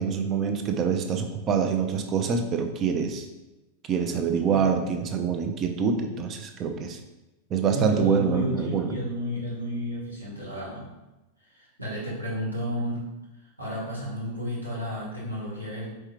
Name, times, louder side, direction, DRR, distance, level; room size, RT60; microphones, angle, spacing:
voice 1, 0.0-3.3 3.9-7.0 7.5-8.9, right 6 dB, 30° right, 5 dB, 0.5 m, -25 dB
voice 2, 7.7-10.9 11.5-13.0 13.6-15.9, equal, 85° right, -6 dB, 1.4 m, -32 dB
4.5 x 3.2 x 3.1 m, 1.0 s
figure-of-eight pair, 90°, 0 cm